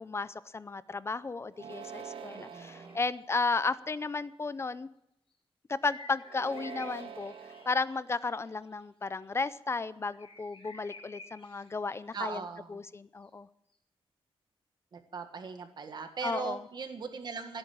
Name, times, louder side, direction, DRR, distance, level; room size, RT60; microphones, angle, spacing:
voice 1, 0.0-4.9 5.7-7.3 7.7-12.4 12.7-13.5 16.2-16.6, left 4 dB, 25° left, 16 dB, 0.5 m, -34 dB
sound 1, 1.5-3.0 3.7-4.2 6.2-7.7, right 7 dB, 75° right, 1.6 m, -45 dB
voice 2, 2.3-3.0 12.1-12.8 14.9-17.6, right 5 dB, 50° right, 7 dB, 1.7 m, -39 dB
sound 2, 2.9-3.0 5.8-8.8 9.1-9.5 10.0-12.2 13.7-13.8, left 3 dB, 70° left, 5.0 m, -52 dB
15.5 x 8.8 x 8.5 m, 0.78 s
wide cardioid pair, 155°, 10 cm